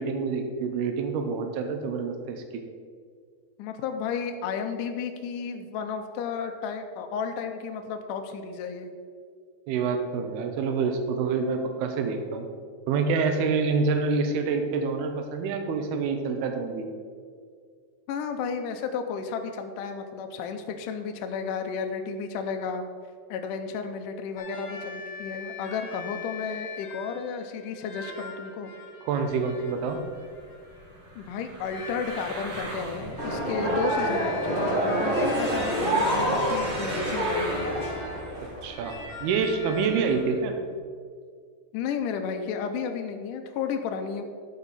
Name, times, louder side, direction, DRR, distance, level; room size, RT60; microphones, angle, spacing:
voice 1, 0.0-2.6 9.7-12.5 12.9-16.9 29.0-30.0 38.6-40.6, right 4 dB, 85° right, 5 dB, 2.8 m, -27 dB
voice 2, 3.6-8.9 18.1-22.8 23.3-28.7 31.2-37.7 41.7-44.2, left 6 dB, 85° left, 5 dB, 1.9 m, -33 dB
sound 1, 24.4-30.9 31.7-40.5, left 5 dB, 65° left, 0.9 m, -43 dB
sound 2, 29.2-40.3, right 2 dB, 55° right, 1.9 m, -40 dB
sound 3, 33.2-38.9, right 1 dB, 15° right, 1.9 m, -27 dB
13.5 x 5.6 x 4.1 m, 2.1 s
omnidirectional pair, 4.5 m